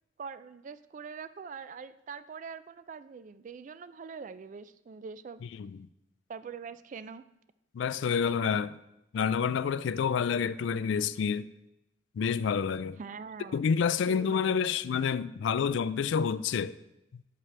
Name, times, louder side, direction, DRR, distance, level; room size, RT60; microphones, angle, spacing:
voice 1, 0.2-5.4 6.3-7.2 13.0-13.7 14.1-14.8, right 5 dB, 40° right, 0.3 m, -43 dB
voice 2, 7.7-8.7 9.1-11.5 12.2-13.0 13.5-16.7, left 6 dB, 70° left, 0.3 m, -28 dB
11.0 x 7.3 x 3.3 m
head